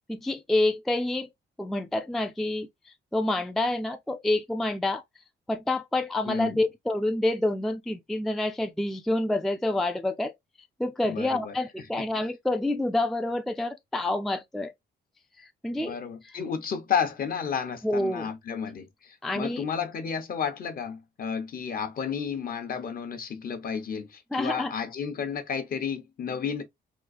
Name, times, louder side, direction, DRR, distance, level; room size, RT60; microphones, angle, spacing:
voice 1, 0.1-1.3 1.6-2.7 3.1-5.0 5.5-10.3 10.8-14.7 15.4-16.0 16.2-16.4 17.8-18.3 19.2-19.7 24.3-24.7, left 1 dB, ahead, 0.3 m, -28 dB
voice 2, 6.2-6.6 11.0-11.5 15.8-26.6, left 7 dB, 50° left, 0.8 m, -32 dB
3.7 x 2.4 x 2.5 m
cardioid pair, 110°, 19 cm